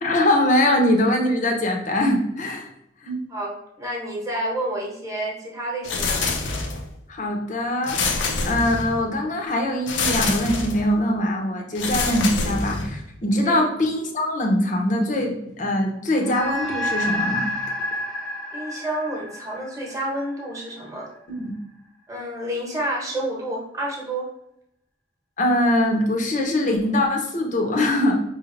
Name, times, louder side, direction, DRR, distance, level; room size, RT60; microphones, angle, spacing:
voice 1, 0.0-2.7 3.0-3.2 7.1-8.0 8.4-17.5 21.4-21.6 25.4-28.2, left 1 dB, 45° left, 2 dB, 0.7 m, -22 dB
voice 2, 3.3-6.5 13.4-13.6 18.5-21.1 22.1-24.3, right 1 dB, 20° right, -3 dB, 1.0 m, -29 dB
sound 1, 5.8-7.0 7.8-9.1 9.9-10.9 11.7-13.1, left 3 dB, 80° left, 0.6 m, -26 dB
sound 2, 16.2-20.9, left 1 dB, 5° left, 0.6 m, -29 dB
5.0 x 3.2 x 2.5 m, 0.80 s
head